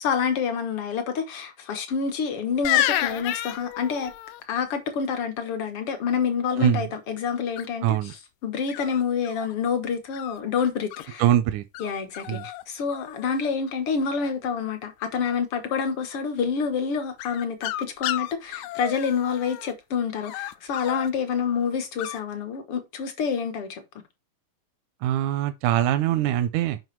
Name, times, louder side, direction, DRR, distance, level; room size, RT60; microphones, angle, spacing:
voice 1, 0.0-4.1 4.5-8.0 8.4-11.2 11.8-23.8, left 6 dB, 55° left, 1.8 m, -27 dB
sound 1, 2.6-4.4 7.6-8.0 8.7-9.5 10.1-11.1 11.7-11.9 12.1-12.6 12.9-13.5 17.2-19.7 20.2-21.1 22.0-22.2, left 13 dB, 75° left, 1.8 m, -30 dB
voice 2, 7.8-8.1 11.2-11.6 12.3-12.5 25.0-26.8, right 12 dB, 80° right, 2.0 m, -23 dB
7.9 x 5.5 x 4.6 m
omnidirectional pair, 3.7 m